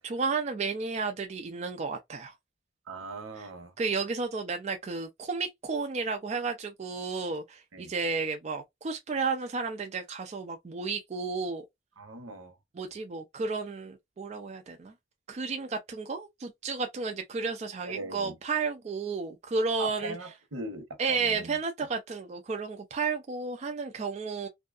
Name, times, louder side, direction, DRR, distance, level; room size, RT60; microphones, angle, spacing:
voice 1, 0.0-2.3 3.4-3.5 3.8-11.7 12.7-14.9 15.3-20.2 21.0-24.5, right 4 dB, 35° right, 0.3 m, -32 dB
voice 2, 2.9-3.7 7.7-7.9 12.0-12.6 17.9-18.3 19.8-21.5, right 2 dB, 80° right, 0.9 m, -40 dB
2.6 x 2.3 x 2.3 m
head